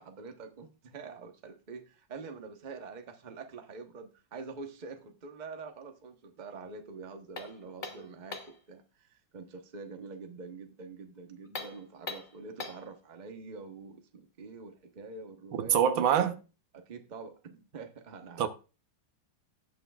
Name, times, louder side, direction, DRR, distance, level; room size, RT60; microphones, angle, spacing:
voice 1, 0.0-15.8 16.7-18.5, right 4 dB, 30° right, 0.9 m, -46 dB
sound 1, 7.4-8.6 11.4-12.9, left 3 dB, 35° left, 0.9 m, -41 dB
voice 2, 15.5-16.4 18.4-18.5, right 9 dB, 80° right, 1.6 m, -25 dB
17.5 x 5.9 x 2.3 m
omnidirectional pair, 2.1 m